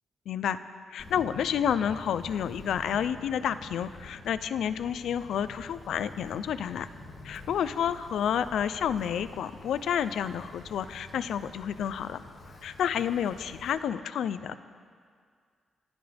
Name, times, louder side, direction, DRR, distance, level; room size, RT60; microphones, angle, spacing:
voice 1, 0.3-0.6 0.9-6.9 7.2-12.2 12.6-14.6, left 9 dB, 85° left, 13 dB, 0.6 m, -30 dB
Wind, 1.0-13.7, left 2 dB, 50° left, 2.7 m, -48 dB
26.0 x 15.0 x 3.5 m, 2.1 s
wide cardioid pair, 145°, 0 cm